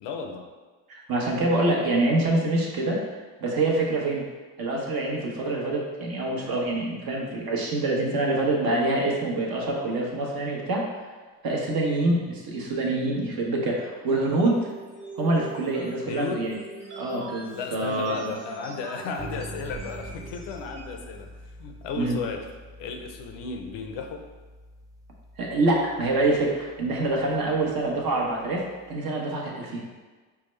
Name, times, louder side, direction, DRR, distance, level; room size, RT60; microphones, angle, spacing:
voice 1, 0.0-0.5 16.1-16.5 17.5-21.3 21.6-22.4 22.8-24.2 27.4-27.6, left 4 dB, 65° left, 4 dB, 0.7 m, -34 dB
voice 2, 0.9-3.1 3.4-4.3 4.6-10.8 11.4-14.6 15.2-16.6 16.9-18.3 21.9-22.2 25.4-29.8, right 2 dB, 50° right, -2 dB, 1.1 m, -26 dB
sound 1, 13.9-21.0, right 2 dB, 35° right, 1.3 m, -42 dB
sound 2, 19.2-29.0, right 1 dB, 10° right, 0.4 m, -46 dB
4.7 x 2.2 x 3.2 m, 1.3 s
supercardioid pair, 70°, 46 cm